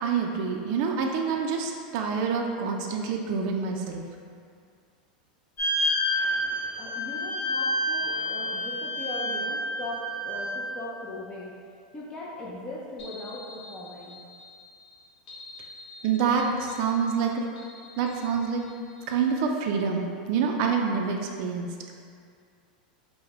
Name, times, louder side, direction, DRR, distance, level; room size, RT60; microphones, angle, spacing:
voice 1, 0.0-4.0 16.0-17.4 18.0-18.6 19.1-21.7, right 6 dB, 50° right, 1 dB, 0.4 m, -27 dB
sound 1, 5.6-10.6, equal, 35° left, 1.4 m, -29 dB
voice 2, 6.8-11.5 11.9-14.2, left 1 dB, 20° left, -5 dB, 0.5 m, -39 dB
sound 2, 13.0-19.6, left 3 dB, 70° left, 0.9 m, -48 dB
4.6 x 2.1 x 3.3 m, 2.2 s
supercardioid pair, 140°, 4 cm